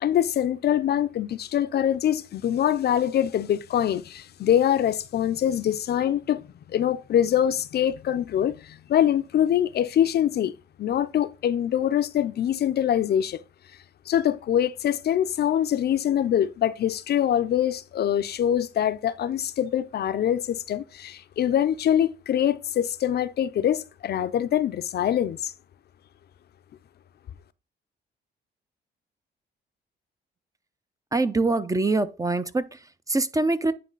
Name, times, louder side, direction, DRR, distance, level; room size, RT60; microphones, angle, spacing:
voice 1, 0.0-10.5 10.8-13.4 14.1-25.5, left 10 dB, 55° left, 0.5 m, -24 dB
voice 2, 31.1-33.7, right 3 dB, 15° right, 0.5 m, -24 dB
9.4 x 3.2 x 3.9 m
cardioid pair, 90°, 20 cm